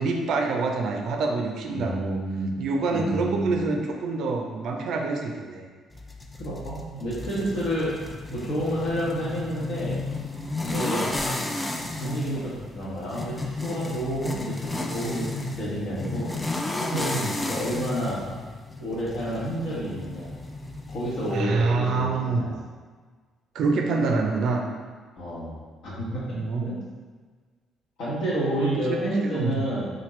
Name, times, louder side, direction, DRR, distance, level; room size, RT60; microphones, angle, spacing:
voice 1, 0.0-2.2 2.6-5.7 17.2-17.4 21.3-22.5 23.5-24.6 26.3-26.7 28.6-29.0 29.2-29.6, right 3 dB, 60° right, 2 dB, 0.5 m, -26 dB
voice 2, 1.7-2.5 2.9-3.6 6.4-7.9 8.3-10.0 10.6-11.1 12.0-16.3 16.8-18.2 18.8-20.3 20.9-22.5 25.2-25.6 25.8-26.2 26.7-26.8 28.0-29.9, right 1 dB, 65° left, -6 dB, 1.2 m, -29 dB
sound 1, 5.9-21.4, left 2 dB, 20° left, 0.4 m, -33 dB
4.2 x 2.6 x 3.1 m, 1.5 s
hypercardioid pair, 45°, 0 cm